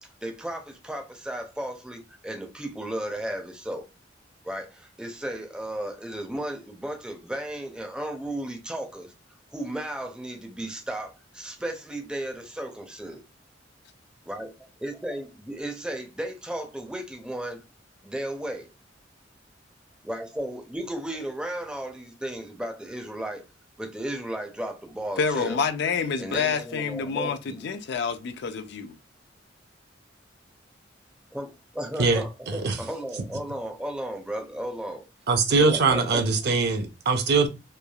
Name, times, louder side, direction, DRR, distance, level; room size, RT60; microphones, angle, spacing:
voice 1, 0.0-3.9 4.4-9.1 9.5-13.2 14.3-17.6 18.0-18.7 20.0-23.4 23.8-25.6 26.2-27.6 31.3-35.1 35.6-36.2, right 1 dB, 5° right, 0.4 m, -34 dB
voice 2, 25.2-28.9, left 5 dB, 60° left, 0.3 m, -28 dB
voice 3, 32.0-32.8 35.3-37.5, right 4 dB, 60° right, 0.5 m, -22 dB
3.1 x 2.3 x 2.2 m
head